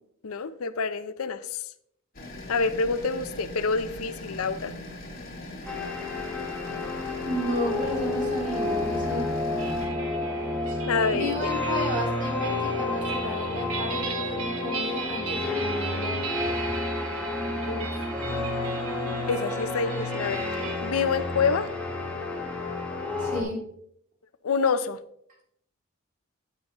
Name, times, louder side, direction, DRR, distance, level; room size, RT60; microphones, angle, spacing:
voice 1, 0.2-1.6 2.5-4.7 10.9-11.5 17.7-17.9 19.3-21.7 24.4-25.0, left 5 dB, 85° left, 13 dB, 0.5 m, -27 dB
sound 1, 2.1-9.9, left 1 dB, 45° left, 3.4 m, -40 dB
sound 2, 5.7-23.4, left 2 dB, 5° left, 1.5 m, -30 dB
voice 2, 7.2-9.2 10.7-10.8 11.1-16.2 23.2-23.6, equal, 40° right, -3 dB, 3.2 m, -32 dB
sound 3, 9.6-20.8, right 5 dB, 75° right, 1.2 m, -38 dB
9.2 x 9.0 x 3.0 m, 0.72 s
head